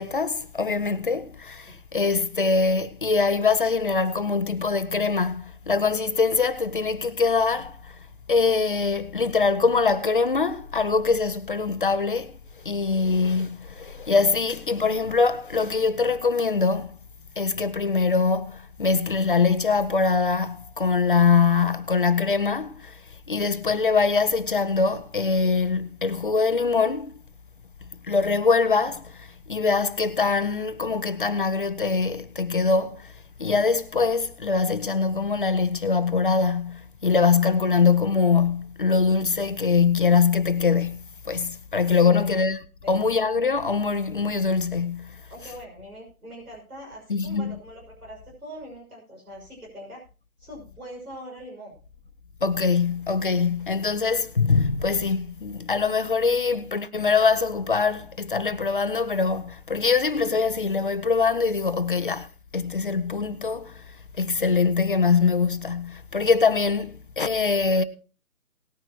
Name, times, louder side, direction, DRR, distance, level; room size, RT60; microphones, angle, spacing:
voice 1, 0.0-7.9 8.3-12.3 12.6-17.0 17.4-23.0 23.3-27.1 28.1-33.1 33.4-42.6 42.9-45.2 47.1-47.5 52.4-62.3 62.5-63.8 64.2-67.8, left 4 dB, 35° left, 0.7 m, -23 dB
voice 2, 45.3-50.0 50.4-51.8, equal, 80° right, 6.2 m, -42 dB
18.5 x 9.8 x 2.9 m
figure-of-eight pair, 155°, 44 cm